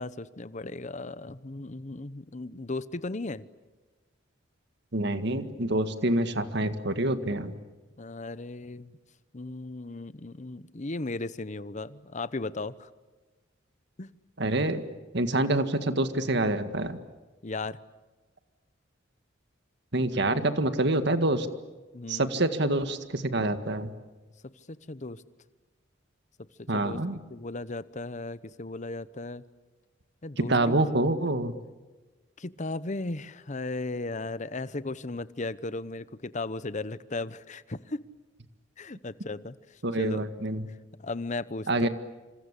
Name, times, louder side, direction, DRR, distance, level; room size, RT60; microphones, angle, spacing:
voice 1, 0.0-3.4 8.0-9.0 9.3-12.9 14.0-14.1 17.4-17.8 21.9-22.3 24.7-25.2 26.6-27.0 27.3-29.4 30.2-30.8 32.4-38.0 38.8-40.2 41.0-41.9, left 2 dB, 40° left, 16 dB, 0.9 m, -36 dB
voice 2, 4.9-7.5 14.4-14.8 15.1-17.0 19.9-21.5 22.1-23.9 26.7-27.2 30.4-31.5 39.8-40.7 41.7-41.9, right 2 dB, 60° right, 10 dB, 1.9 m, -26 dB
27.0 x 26.5 x 8.3 m, 1.2 s
head